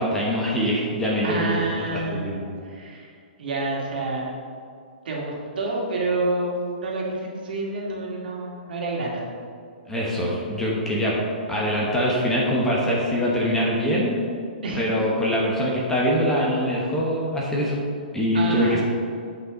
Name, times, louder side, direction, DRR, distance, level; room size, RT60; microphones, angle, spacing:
voice 1, 0.0-2.5 9.9-11.2 11.5-14.1 14.7-17.8 18.1-18.8, equal, 5° left, -4 dB, 1.2 m, -23 dB
voice 2, 1.2-2.3 2.6-3.1 3.4-4.3 5.0-9.3 14.6-14.9 18.3-18.8, right 2 dB, 70° right, -3 dB, 2.1 m, -28 dB
9.4 x 5.6 x 3.9 m, 2.3 s
hypercardioid pair, 155°, 5 cm